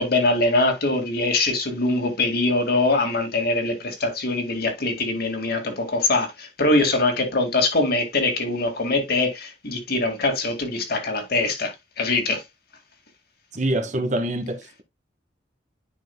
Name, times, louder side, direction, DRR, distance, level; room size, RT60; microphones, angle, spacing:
voice 1, 0.0-12.4, left 2 dB, 55° left, 2.1 m, -23 dB
voice 2, 13.5-14.8, right 1 dB, 40° right, 1.2 m, -25 dB
10.5 x 5.5 x 2.2 m
head